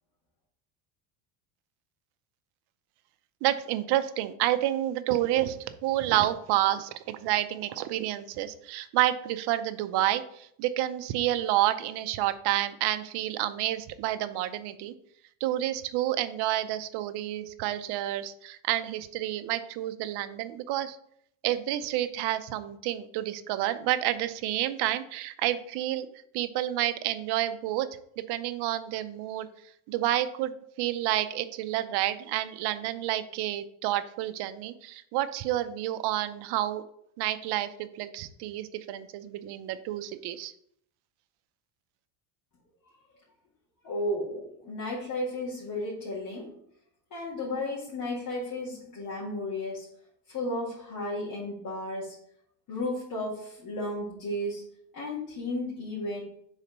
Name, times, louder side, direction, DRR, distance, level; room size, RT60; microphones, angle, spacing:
voice 1, 3.4-14.9 15.4-21.0 21.4-26.1 26.3-27.9 28.3-29.5 29.9-36.8 37.2-40.5, right 13 dB, 60° right, 11 dB, 0.7 m, -29 dB
voice 2, 43.8-46.5 47.1-49.9 50.3-52.2 52.7-54.6 54.9-56.2, left 1 dB, 45° left, -6 dB, 2.1 m, -33 dB
4.9 x 4.1 x 5.4 m, 0.69 s
cardioid pair, 125°, 45 cm